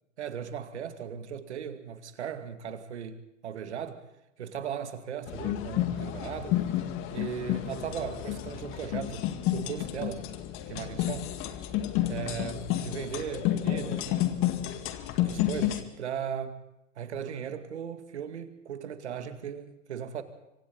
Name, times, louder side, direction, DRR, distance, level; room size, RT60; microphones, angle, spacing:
voice 1, 0.2-4.1 4.4-10.3 10.7-11.3 12.1-14.3 15.2-16.6 17.0-20.2, right 8 dB, 60° right, 9 dB, 2.4 m, -37 dB
sound 1, 5.3-15.8, left 13 dB, 35° left, 2.0 m, -31 dB
25.5 x 25.5 x 4.1 m, 0.88 s
figure-of-eight pair, 100°, 37 cm